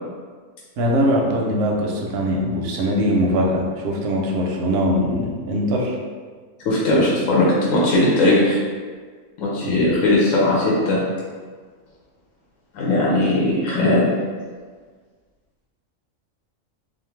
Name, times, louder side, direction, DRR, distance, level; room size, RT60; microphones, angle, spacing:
voice 1, 0.8-6.0 9.6-10.0, equal, 65° right, -1 dB, 0.7 m, -21 dB
voice 2, 6.6-8.6 9.4-11.0 12.7-14.0, left 1 dB, 75° left, -5 dB, 1.0 m, -18 dB
2.5 x 2.4 x 3.1 m, 1.5 s
omnidirectional pair, 1.4 m